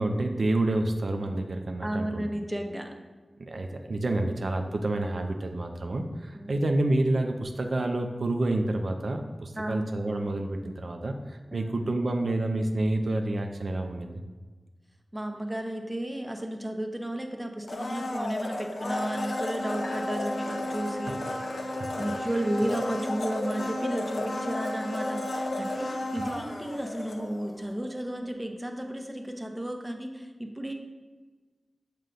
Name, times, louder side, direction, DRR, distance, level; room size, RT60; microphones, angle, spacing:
voice 1, 0.0-2.3 3.4-14.2 21.3-21.4 21.8-21.9, right 2 dB, 70° right, 4 dB, 0.3 m, -28 dB
voice 2, 1.8-2.9 6.3-6.6 9.5-9.8 11.5-11.7 15.1-21.2 22.0-30.7, right 1 dB, 15° right, 4 dB, 0.5 m, -33 dB
Domestic sounds home sounds, 17.6-27.6 27.9-28.0, left 1 dB, 85° left, 0.5 m, -33 dB
6.2 x 2.2 x 3.8 m, 1.3 s
wide cardioid pair, 50°, 0 cm